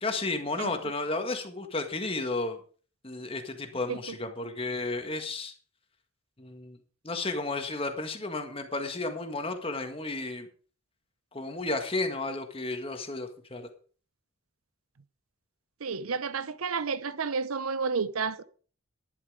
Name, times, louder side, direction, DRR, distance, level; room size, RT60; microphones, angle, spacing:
voice 1, 0.0-2.6 3.0-5.5 6.4-6.8 7.0-10.5 11.3-13.7, left 2 dB, 25° left, 1.7 m, -33 dB
voice 2, 0.6-0.9 3.9-4.2 15.8-18.4, right 5 dB, 85° right, 0.8 m, -31 dB
11.5 x 11.0 x 4.9 m
head